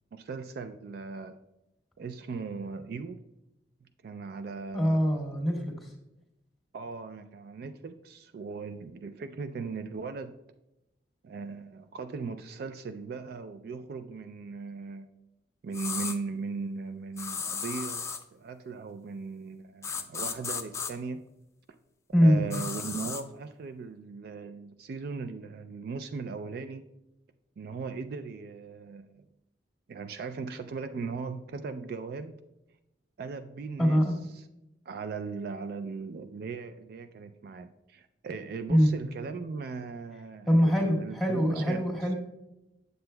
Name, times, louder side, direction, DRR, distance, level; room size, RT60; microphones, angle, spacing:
voice 1, 0.1-1.4 2.0-3.2 4.0-5.3 6.7-10.4 11.2-15.1 15.6-18.1 18.3-21.3 22.2-26.8 27.6-29.2 29.9-32.4 33.2-34.1 34.9-41.8, right 4 dB, 60° right, 10 dB, 0.3 m, -38 dB
voice 2, 4.7-5.9 22.1-22.5 33.8-34.2 38.7-38.9 40.5-42.1, equal, ahead, -2 dB, 1.4 m, -24 dB
sound 1, 15.7-16.2 17.2-18.2 19.8-20.9 22.5-23.2, left 5 dB, 15° left, 0.4 m, -35 dB
7.8 x 7.7 x 2.2 m, 0.92 s
head